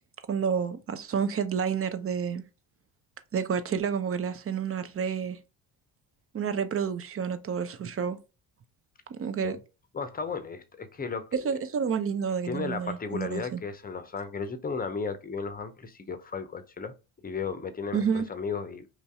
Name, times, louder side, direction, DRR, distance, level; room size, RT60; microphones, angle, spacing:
voice 1, 0.3-2.4 3.3-5.4 6.3-8.2 9.1-9.6 11.4-13.6 17.9-18.3, right 7 dB, 35° right, 0.6 m, -29 dB
voice 2, 9.9-11.3 12.4-16.9 17.2-18.9, left 5 dB, 20° left, 0.7 m, -34 dB
3.1 x 2.7 x 3.5 m
hypercardioid pair, 60°, 41 cm